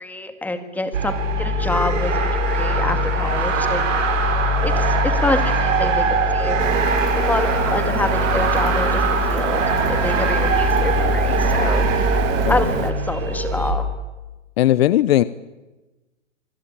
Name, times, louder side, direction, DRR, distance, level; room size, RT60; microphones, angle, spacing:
voice 1, 0.0-3.8 4.6-6.0 6.3-6.6 7.1-12.1 12.5-13.9, left 2 dB, 5° left, 9 dB, 1.9 m, -27 dB
sound 1, 0.9-13.7, right 1 dB, 80° right, 6.5 m, -21 dB
Printer, 6.6-12.9, right 11 dB, 30° right, 1.8 m, -27 dB
voice 2, 14.6-15.2, left 13 dB, 50° left, 16 dB, 0.9 m, -17 dB
26.0 x 20.5 x 8.9 m, 1.1 s
hypercardioid pair, 150°, 38 cm